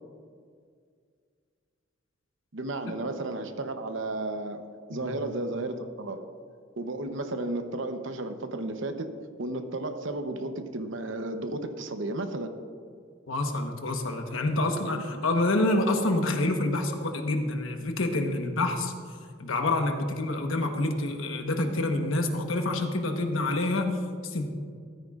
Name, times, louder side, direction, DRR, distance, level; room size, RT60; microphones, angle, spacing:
voice 1, 2.5-4.6 4.9-6.2 6.8-9.1 9.4-12.5 14.9-15.2, right 2 dB, 70° right, 8 dB, 0.8 m, -33 dB
voice 2, 13.3-18.9 19.4-24.0 24.2-24.4, left 2 dB, 85° left, 4 dB, 1.1 m, -27 dB
14.5 x 13.0 x 2.5 m, 2.1 s
head